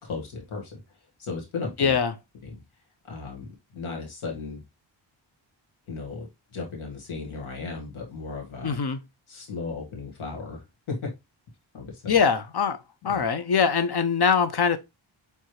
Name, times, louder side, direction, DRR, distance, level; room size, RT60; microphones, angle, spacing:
voice 1, 0.0-0.6 1.2-2.0 2.4-2.6 3.1-3.5 3.7-4.6 5.9-6.3 6.5-8.8 9.3-10.6 10.9-11.0 11.7-12.1 13.0-13.2, left 4 dB, 85° left, 1.8 m, -35 dB
voice 2, 1.8-2.1 8.6-9.0 12.1-12.8 13.0-14.8, left 6 dB, 50° left, 0.8 m, -22 dB
4.7 x 3.5 x 3.1 m
cardioid pair, 65°, 48 cm